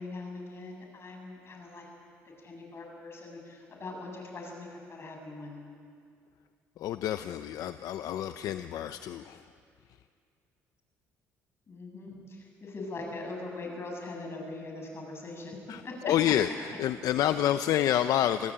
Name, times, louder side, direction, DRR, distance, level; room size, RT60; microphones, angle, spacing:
voice 1, 0.0-1.8 2.4-5.6 11.7-16.1, left 3 dB, 40° left, 1 dB, 7.8 m, -41 dB
voice 2, 6.8-9.4 15.7-18.5, left 11 dB, 70° left, 10 dB, 0.7 m, -28 dB
26.0 x 18.0 x 8.9 m, 2.4 s
cardioid pair, 85°, 6 cm